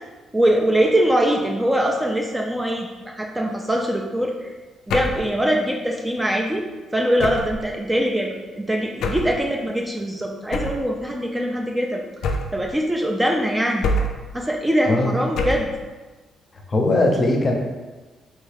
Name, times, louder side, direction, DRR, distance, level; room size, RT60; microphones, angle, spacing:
voice 1, 0.3-4.5 4.9-6.6 6.9-12.0 12.5-13.9 14.3-15.7, equal, 10° right, 0 dB, 0.3 m, -22 dB
sound 1, 4.9-5.3 7.2-7.6 9.0-9.4 10.5-10.9 12.2-12.7 13.8-14.3 15.4-15.8, left 2 dB, 75° left, 0.3 m, -25 dB
voice 2, 14.9-15.2 16.7-17.5, left 2 dB, 35° left, 1 dB, 0.6 m, -19 dB
3.3 x 2.3 x 3.3 m, 1.2 s
cardioid pair, 90°, 0 cm